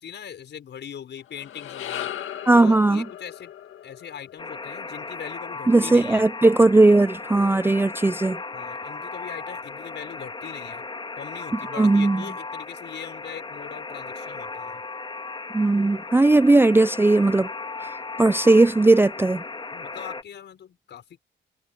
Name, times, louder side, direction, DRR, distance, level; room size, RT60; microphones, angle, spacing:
voice 1, 0.0-2.1 2.6-3.5 3.8-6.3 8.5-10.8 11.2-14.8 19.7-21.2, left 8 dB, 60° left, 5.8 m, -40 dB
sound 1, 1.2-5.7, left 11 dB, 75° left, 2.0 m, -38 dB
voice 2, 2.5-3.0 5.7-8.4 11.7-12.2 15.5-17.5 18.2-19.4, right 2 dB, 10° right, 0.5 m, -17 dB
Alarm, 4.4-20.2, left 3 dB, 25° left, 3.1 m, -36 dB
cardioid pair, 105°, 20 cm